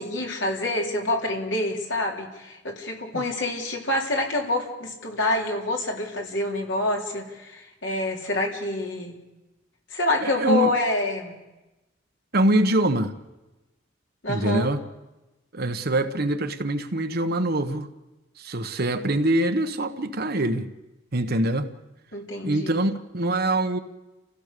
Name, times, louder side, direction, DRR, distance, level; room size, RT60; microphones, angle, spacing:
voice 1, 0.0-9.2 9.9-11.4 14.2-14.7 22.1-22.7, left 1 dB, 70° left, 3.9 m, -27 dB
voice 2, 10.2-10.7 12.3-13.1 14.3-14.8 15.5-17.9 18.4-20.7 21.1-21.7 22.4-23.8, right 1 dB, 55° right, 1.3 m, -24 dB
30.0 x 16.0 x 6.8 m
head